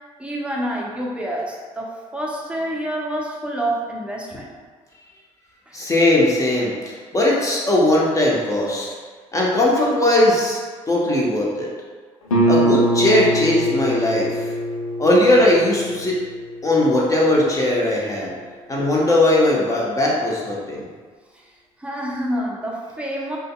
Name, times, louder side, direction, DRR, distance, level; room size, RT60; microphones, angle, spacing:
voice 1, 0.2-4.5 5.7-5.8 21.8-23.4, right 1 dB, 5° right, -3 dB, 0.8 m, -27 dB
voice 2, 5.7-8.9 9.3-10.6 10.9-11.7 12.5-14.5 15.0-16.2 16.6-18.3 18.7-20.9, left 1 dB, 20° left, -4 dB, 0.9 m, -19 dB
Guitar, 12.3-17.7, equal, 85° left, 0.6 m, -23 dB
5.1 x 2.3 x 2.2 m, 1.5 s
figure-of-eight pair, 55°, 17 cm